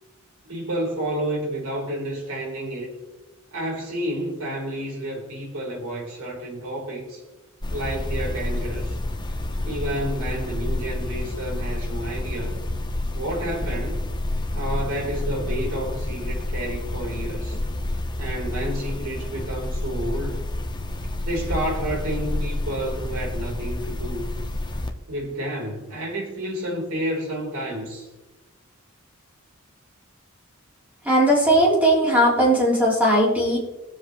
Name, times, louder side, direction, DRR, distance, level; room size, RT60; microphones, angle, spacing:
voice 1, 0.4-2.9 3.5-7.2 7.7-9.0 9.6-12.6 13.1-14.0 14.5-17.6 18.2-20.4 21.3-24.2 25.1-28.1, right 1 dB, 75° right, -2 dB, 3.8 m, -30 dB
sound 1, 7.6-24.9, left 1 dB, 20° left, 0.9 m, -29 dB
voice 2, 31.1-33.6, right 1 dB, 5° right, -5 dB, 3.5 m, -18 dB
22.5 x 7.6 x 3.1 m, 1.1 s
head